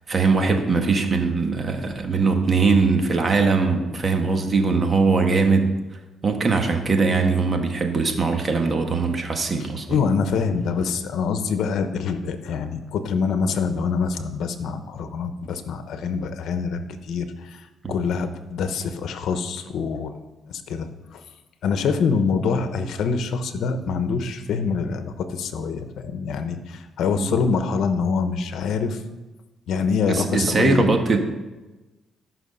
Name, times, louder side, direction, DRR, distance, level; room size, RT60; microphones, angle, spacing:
voice 1, 0.1-5.7 6.2-10.0 17.8-17.9 27.2-27.3 30.1-31.2, right 4 dB, 35° right, 4 dB, 1.6 m, -21 dB
voice 2, 9.9-20.2 20.5-21.2 21.6-29.0 29.7-30.9, left 5 dB, 75° left, 9 dB, 1.0 m, -25 dB
13.0 x 5.9 x 5.5 m, 1.1 s
cardioid pair, 90°, 0 cm